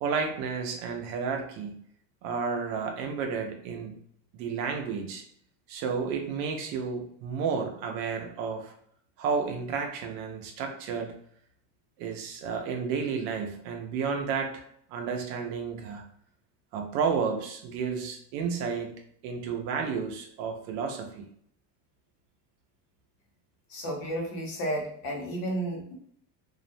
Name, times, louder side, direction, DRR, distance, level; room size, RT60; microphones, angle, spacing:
voice 1, 0.0-1.8 2.2-3.9 4.3-5.2 5.7-8.7 9.2-11.1 12.0-14.6 14.9-16.0 16.7-18.9 19.2-21.2, right 5 dB, 80° right, 3 dB, 0.6 m, -31 dB
voice 2, 23.7-25.9, right 1 dB, 45° left, -2 dB, 0.8 m, -32 dB
2.4 x 2.1 x 2.5 m, 0.65 s
cardioid pair, 155°, 50 cm